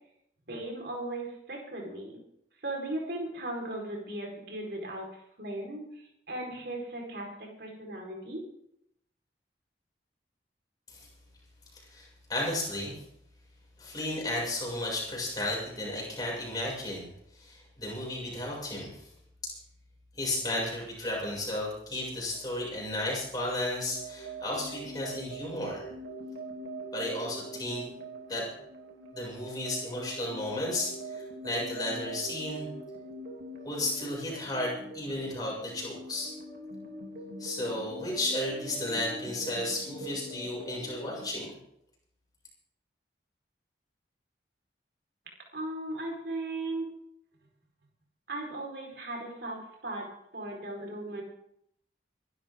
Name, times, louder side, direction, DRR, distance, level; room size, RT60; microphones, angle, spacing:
voice 1, 0.5-2.2 2.6-5.1 5.4-5.8 6.3-8.4 45.5-46.9 48.3-51.2, right 1 dB, 65° right, 0 dB, 4.7 m, -37 dB
voice 2, 11.7-13.0 13.8-17.0 17.3-19.1 19.4-19.5 20.1-25.8 26.9-27.8 28.3-28.5 29.1-32.7 33.6-36.3 37.4-41.5, left 1 dB, 20° left, -4 dB, 6.7 m, -34 dB
sound 1, 23.7-41.3, right 1 dB, 80° right, 3.1 m, -43 dB
25.5 x 12.0 x 3.8 m, 0.76 s
head